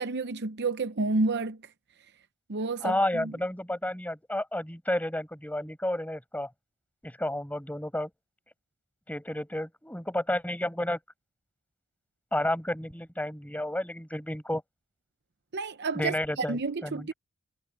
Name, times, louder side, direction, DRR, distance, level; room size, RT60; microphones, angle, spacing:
voice 1, 0.0-1.6 2.5-3.3 15.5-17.1, right 3 dB, 50° right, 0.8 m, -30 dB
voice 2, 2.8-6.5 7.0-8.1 9.1-11.0 12.3-14.6 15.9-17.1, left 1 dB, 5° left, 6.5 m, -31 dB
head